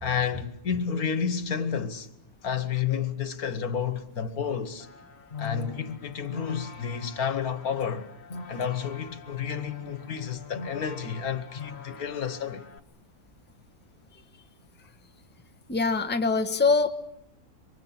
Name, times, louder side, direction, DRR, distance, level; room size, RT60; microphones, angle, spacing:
voice 1, 0.0-2.1 2.4-4.9 5.4-8.1 8.5-12.7, left 7 dB, 70° left, 1.8 m, -30 dB
sound 1, 4.8-12.8, left 6 dB, 45° left, 1.3 m, -42 dB
voice 2, 15.7-16.9, left 4 dB, 10° left, 1.0 m, -23 dB
27.5 x 24.5 x 5.9 m
omnidirectional pair, 1.6 m